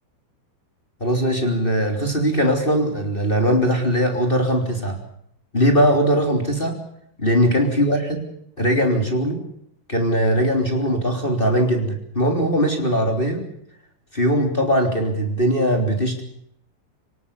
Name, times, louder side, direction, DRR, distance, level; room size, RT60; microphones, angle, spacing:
voice 1, 1.0-5.0 5.5-6.8 7.2-8.2 8.6-9.4 9.9-13.4 14.1-16.2, equal, 15° left, 3 dB, 2.8 m, -20 dB
26.5 x 18.0 x 7.0 m, 0.71 s
omnidirectional pair, 5.5 m